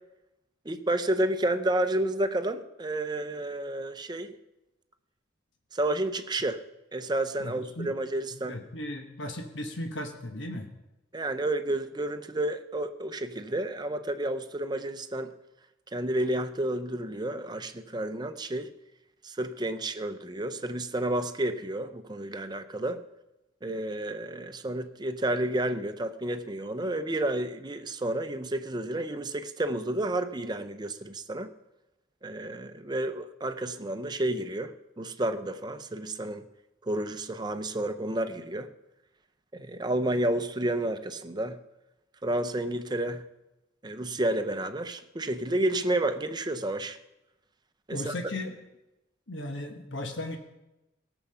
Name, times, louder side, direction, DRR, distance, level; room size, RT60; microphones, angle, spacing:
voice 1, 0.6-4.4 5.7-6.6 6.9-8.6 11.1-15.3 15.9-18.7 19.2-23.0 23.6-31.5 32.2-36.4 36.8-38.7 39.5-41.6 42.2-43.2 43.8-47.0 47.9-48.1, right 1 dB, 25° right, 9 dB, 0.6 m, -30 dB
voice 2, 7.4-8.0 8.3-10.7 47.9-48.6 49.3-50.4, left 1 dB, 75° left, 4 dB, 1.2 m, -36 dB
17.5 x 7.1 x 5.6 m, 0.96 s
head